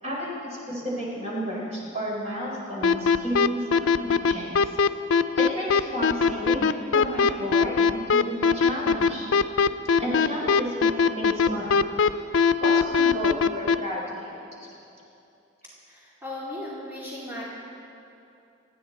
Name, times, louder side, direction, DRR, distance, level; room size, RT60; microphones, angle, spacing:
voice 1, 0.0-4.8 5.4-9.3 10.0-11.7 12.6-14.4, equal, 35° right, -5 dB, 4.2 m, -32 dB
sound 1, 2.8-13.8, left 5 dB, 80° left, 0.5 m, -20 dB
voice 2, 15.9-17.4, left 1 dB, 10° right, -7 dB, 2.2 m, -36 dB
27.5 x 9.5 x 4.3 m, 2.7 s
head